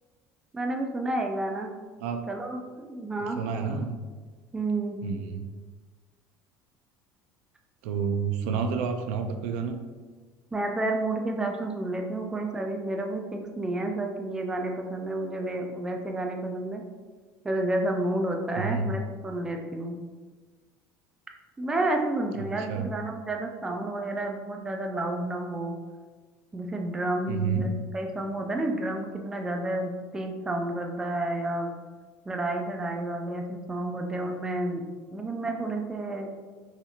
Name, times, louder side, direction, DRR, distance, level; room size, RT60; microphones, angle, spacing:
voice 1, 0.5-1.7 2.3-3.4 4.5-5.0 10.5-16.8 17.4-19.9 21.6-25.8 26.5-31.8 32.3-34.8 35.1-36.3, right 2 dB, 10° right, 3 dB, 0.4 m, -30 dB
voice 2, 3.3-4.0 5.0-5.4 7.8-9.8 18.6-18.9 22.4-22.9 27.3-27.7, right 5 dB, 85° right, 5 dB, 0.4 m, -29 dB
4.2 x 2.8 x 2.4 m, 1.4 s
cardioid pair, 135°, 6 cm